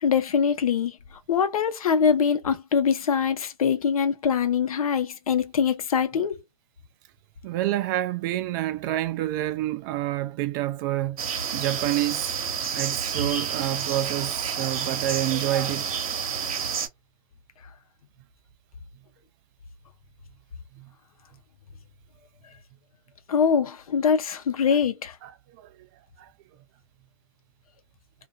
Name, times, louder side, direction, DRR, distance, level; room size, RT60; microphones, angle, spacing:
voice 1, 0.0-1.0 1.3-6.4 23.3-25.2, left 7 dB, 75° left, 0.8 m, -23 dB
voice 2, 7.4-11.2 11.5-12.4 12.7-15.9 20.8-20.9 25.2-25.3 25.6-25.9 26.2-26.3, right 14 dB, 35° right, 0.3 m, -28 dB
sound 1, 11.2-16.9, right 6 dB, 70° right, 0.9 m, -29 dB
2.6 x 2.5 x 2.2 m
hypercardioid pair, 125°, 19 cm